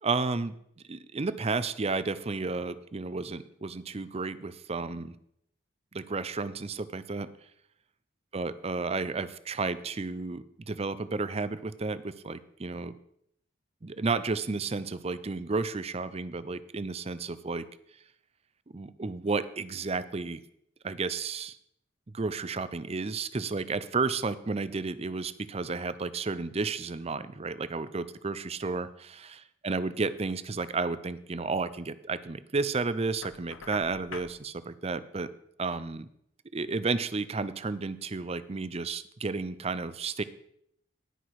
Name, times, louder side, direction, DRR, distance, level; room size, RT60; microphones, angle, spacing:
voice 1, 0.0-0.5 0.9-5.1 5.9-7.3 8.3-12.9 13.8-17.6 18.7-20.4 20.8-21.6 22.1-35.3 35.6-36.1 36.5-40.2, right 4 dB, 30° right, 15 dB, 0.5 m, -32 dB
Knock, 33.2-34.4, left 5 dB, 85° left, 0.9 m, -44 dB
18.0 x 6.1 x 4.8 m, 0.72 s
head